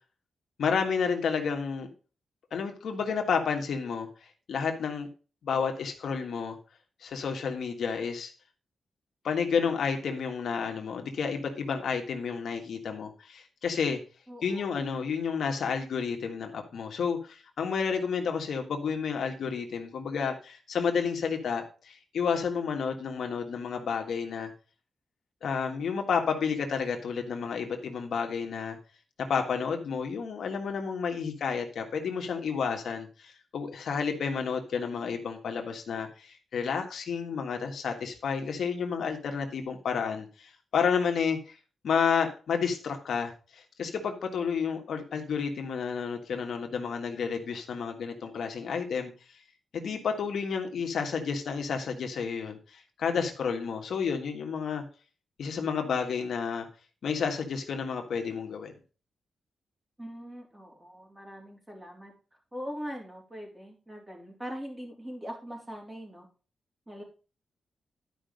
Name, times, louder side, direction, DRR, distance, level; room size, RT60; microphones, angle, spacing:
voice 1, 0.6-1.9 2.5-4.1 4.5-5.1 5.4-6.6 7.0-8.3 9.2-14.0 14.4-24.5 25.4-28.8 29.3-41.6 41.8-49.1 49.7-54.8 55.4-56.7 57.0-58.7, left 6 dB, 75° left, 3 dB, 1.6 m, -31 dB
voice 2, 14.3-14.7 60.0-62.1 62.5-66.3 66.9-67.0, equal, 15° right, 0 dB, 3.4 m, -41 dB
11.5 x 5.2 x 5.2 m, 0.35 s
wide cardioid pair, 125°, 0 cm